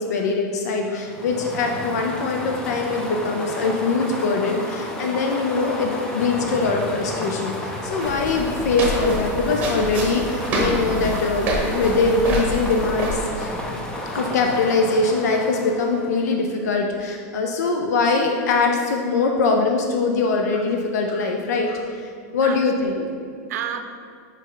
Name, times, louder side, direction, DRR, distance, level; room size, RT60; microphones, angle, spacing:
voice 1, 0.0-13.5 14.1-22.9, left 3 dB, 90° left, 2 dB, 0.6 m, -22 dB
sound 1, 1.0-16.4, left 1 dB, 10° left, 0.4 m, -32 dB
sound 2, 8.0-13.2, right 1 dB, 20° right, 0.8 m, -27 dB
voice 2, 22.4-23.8, right 8 dB, 75° right, 7 dB, 0.6 m, -33 dB
5.3 x 4.9 x 3.9 m, 2.4 s
supercardioid pair, 180°, 9 cm